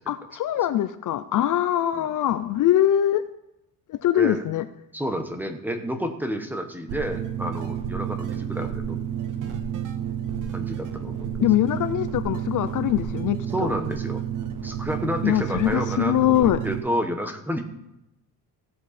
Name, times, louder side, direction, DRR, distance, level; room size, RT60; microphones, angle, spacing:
voice 1, 0.1-3.2 3.9-4.6 11.4-13.4 15.2-16.6, left 12 dB, 55° left, 12 dB, 0.6 m, -22 dB
voice 2, 4.2-4.5 4.9-9.1 10.5-11.3 13.5-14.2 14.6-17.6, equal, 5° right, 5 dB, 1.0 m, -30 dB
sound 1, 6.9-16.8, right 9 dB, 55° right, 1.2 m, -30 dB
16.5 x 7.7 x 4.2 m, 0.86 s
cardioid pair, 155°, 38 cm